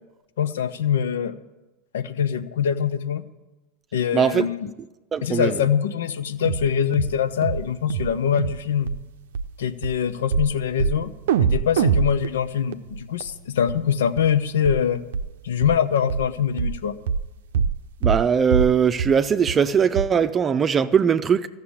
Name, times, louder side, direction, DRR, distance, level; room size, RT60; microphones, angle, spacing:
voice 1, 0.4-1.4 1.9-3.2 3.9-4.7 5.2-8.9 9.6-11.1 11.4-15.0 15.4-16.9, left 8 dB, 85° left, 0.8 m, -23 dB
voice 2, 4.1-4.4 5.1-5.5 18.0-21.5, right 7 dB, 30° right, 0.6 m, -20 dB
sound 1, 6.4-6.7 6.9-7.2 7.4-7.6 7.9-8.1 8.4-8.6 8.9-9.0 9.3-9.5 9.8-9.9 10.3-10.5 10.8-11.0 11.3-13.3 13.7-13.8 14.2-14.3 14.6-14.8 15.1-15.3 15.6-15.8 16.1-16.3 16.6-16.8 17.1-17.3 17.5-17.8 18.0-18.3 18.5-18.7 19.0-19.1 19.5-19.6 20.0-20.1, right 7 dB, 80° right, 0.5 m, -23 dB
14.0 x 6.7 x 9.8 m
hypercardioid pair, 100°, 0 cm